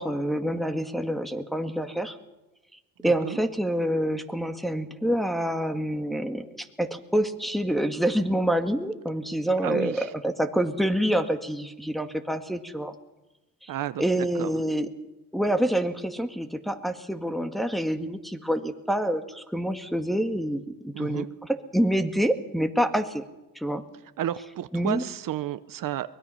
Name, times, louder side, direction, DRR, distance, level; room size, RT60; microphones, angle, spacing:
voice 1, 0.0-2.2 3.0-12.9 13.6-13.7 14.0-14.9 15.3-21.2 21.7-23.2 23.6-23.8 24.7-25.0, right 1 dB, ahead, 5 dB, 1.9 m, -27 dB
voice 2, 3.0-3.4 9.6-10.1 13.7-14.0 14.4-14.5 20.9-21.3 24.2-26.2, right 12 dB, 65° right, 13 dB, 0.9 m, -32 dB
23.5 x 20.5 x 5.7 m, 1.0 s
cardioid pair, 95°, 36 cm